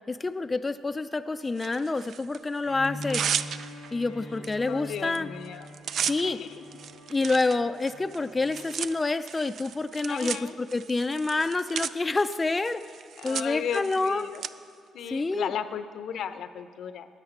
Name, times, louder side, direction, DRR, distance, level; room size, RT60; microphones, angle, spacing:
voice 1, 0.1-3.2 3.9-5.3 6.0-6.4 7.1-12.8 13.2-14.3 15.1-15.5, left 3 dB, 20° left, 9 dB, 0.3 m, -28 dB
Tearing, 1.6-2.4 2.8-3.9 4.4-4.6 4.8-5.2 5.4-14.5, right 8 dB, 65° right, 0.3 m, -35 dB
Bowed string instrument, 2.6-8.7, equal, 80° right, 2.1 m, -43 dB
voice 2, 4.7-5.7 6.2-6.8 8.6-8.8 10.1-10.5 13.2-14.5 14.9-17.1, left 8 dB, 70° left, 11 dB, 0.6 m, -35 dB
12.5 x 8.1 x 5.9 m, 2.2 s
cardioid pair, 90°, 0 cm